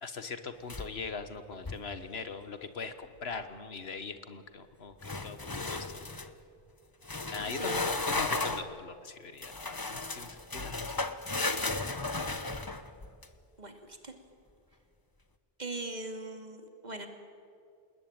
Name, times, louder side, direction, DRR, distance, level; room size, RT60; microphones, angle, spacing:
voice 1, 0.0-6.1 7.3-10.9, left 4 dB, 80° left, 10 dB, 1.6 m, -41 dB
sound 1, 0.7-1.2 1.5-1.9 5.0-6.3 7.0-8.7 9.4-13.3, left 2 dB, 20° left, 1.0 m, -34 dB
voice 2, 7.5-7.9 13.6-14.1 15.6-17.1, right 2 dB, 45° right, 4 dB, 2.7 m, -40 dB
28.5 x 20.0 x 8.9 m, 2.3 s
omnidirectional pair, 1.0 m